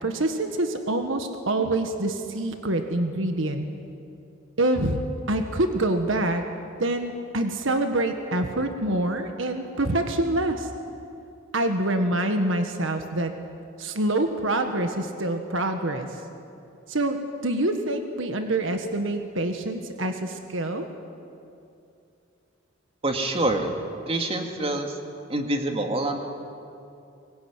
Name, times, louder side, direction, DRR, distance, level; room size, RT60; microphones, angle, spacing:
voice 1, 0.0-3.7 4.6-6.4 6.8-10.7 11.5-13.3 13.8-16.1 16.9-17.2 17.4-20.9, right 1 dB, 65° right, 6 dB, 1.7 m, -26 dB
voice 2, 23.0-23.7 24.1-25.0 25.3-26.2, right 2 dB, 30° right, 3 dB, 2.4 m, -26 dB
24.0 x 21.0 x 9.6 m, 2.6 s
head